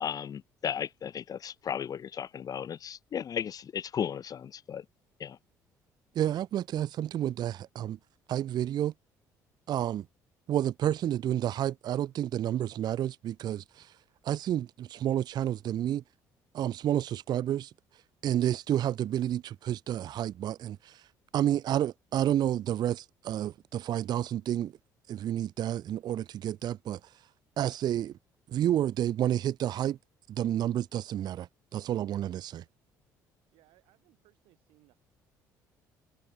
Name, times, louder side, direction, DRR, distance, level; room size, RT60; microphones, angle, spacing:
voice 1, 0.0-4.9 5.2-5.4, left 8 dB, 45° left, 0.5 m, -35 dB
voice 2, 6.2-8.0 8.3-8.9 9.7-10.1 10.5-13.9 14.2-16.0 16.5-17.7 18.2-21.0 21.3-24.7 25.1-27.0 27.6-28.1 28.5-30.0 30.3-32.6, right 11 dB, 50° right, 0.4 m, -30 dB
voice 3, 33.5-35.0, right 18 dB, 70° right, 4.6 m, -65 dB
hypercardioid pair, 55°, 9 cm